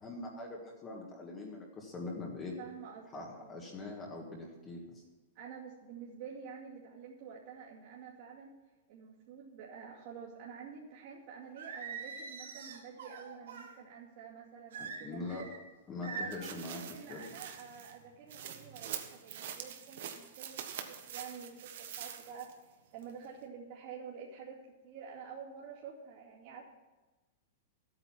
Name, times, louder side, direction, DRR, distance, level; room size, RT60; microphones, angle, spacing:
voice 1, 0.0-2.6 3.1-5.0 14.8-15.5 15.9-16.8 17.1-17.3, left 2 dB, 20° left, -1 dB, 1.6 m, -43 dB
voice 2, 2.6-3.6 5.3-8.5 8.9-15.2 16.0-22.5 22.9-26.6, right 6 dB, 45° right, -6 dB, 2.4 m, -49 dB
Singing, 11.6-13.7 14.7-15.6 16.0-16.5, right 5 dB, 85° right, 2.4 m, -43 dB
sound 1, 16.3-22.6 23.0-23.1, right 9 dB, 60° right, 1.4 m, -45 dB
13.0 x 9.0 x 6.0 m, 1.2 s
supercardioid pair, 165°, 0 cm